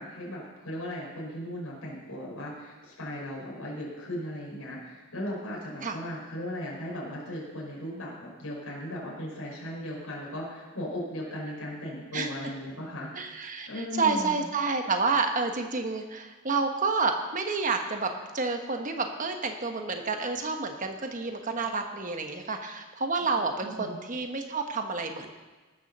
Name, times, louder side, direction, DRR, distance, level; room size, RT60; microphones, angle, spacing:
voice 1, 0.0-13.1 13.7-14.4 23.6-24.0, equal, 80° left, -4 dB, 4.6 m, -37 dB
voice 2, 13.1-25.3, right 4 dB, 35° right, 4 dB, 1.1 m, -29 dB
17.5 x 7.0 x 6.6 m, 1.3 s
head